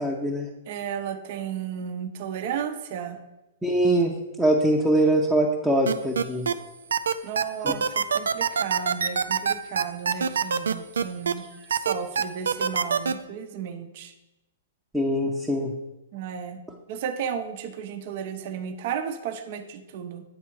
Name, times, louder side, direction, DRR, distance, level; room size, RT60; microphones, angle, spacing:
voice 1, 0.0-0.5 3.6-4.1 4.4-6.5 7.6-7.7 14.9-15.7, right 1 dB, ahead, -3 dB, 0.7 m, -23 dB
voice 2, 0.7-3.2 7.2-14.1 16.1-16.6 16.9-20.2, right 8 dB, 50° right, 7 dB, 0.7 m, -34 dB
sound 1, 5.9-6.5 6.9-11.3 11.7-13.1, right 6 dB, 90° right, 0.4 m, -23 dB
8.7 x 3.3 x 4.7 m, 1.0 s
hypercardioid pair, 135°, 0 cm